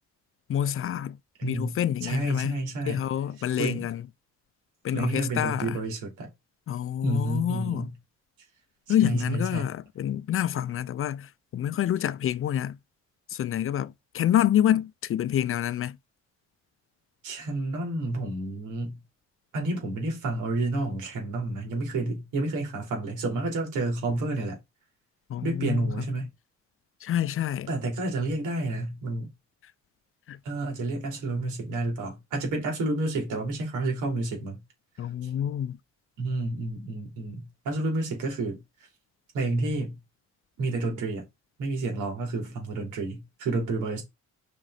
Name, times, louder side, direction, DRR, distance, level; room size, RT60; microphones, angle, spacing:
voice 1, 0.5-1.2 1.4-4.0 4.8-5.8 6.7-7.9 8.9-12.8 13.3-16.0 25.3-26.1 27.0-27.7 30.3-30.4 35.0-35.8, left 10 dB, 45° left, 0.4 m, -27 dB
voice 2, 1.4-3.0 3.6-3.9 4.9-6.3 7.0-7.9 8.9-9.7 17.2-19.0 19.5-24.6 25.4-26.3 27.7-29.3 30.4-34.6 35.2-35.3 36.2-38.6 39.3-40.0 40.6-41.3 41.6-44.0, right 2 dB, 90° right, 3.2 m, -30 dB
5.2 x 3.7 x 4.9 m
cardioid pair, 90°, 30 cm